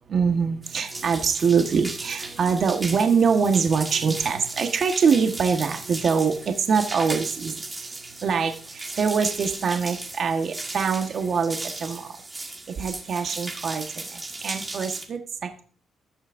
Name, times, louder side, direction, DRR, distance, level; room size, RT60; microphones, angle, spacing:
voice 1, 0.1-12.1 12.4-15.6, right 6 dB, 55° right, 5 dB, 1.3 m, -24 dB
sound 1, 0.6-15.1, right 2 dB, 20° right, 1.6 m, -36 dB
16.0 x 6.4 x 2.6 m, 0.42 s
cardioid pair, 90°, 0 cm